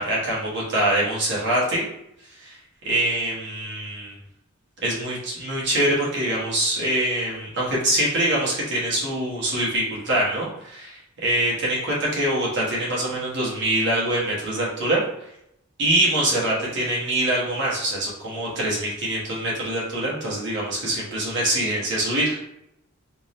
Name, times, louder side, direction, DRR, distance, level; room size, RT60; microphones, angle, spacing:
voice 1, 0.0-1.8 2.3-2.6 2.8-4.1 4.8-15.0 15.8-22.4, right 1 dB, 55° right, -6 dB, 1.2 m, -24 dB
3.6 x 2.7 x 3.0 m, 0.79 s
head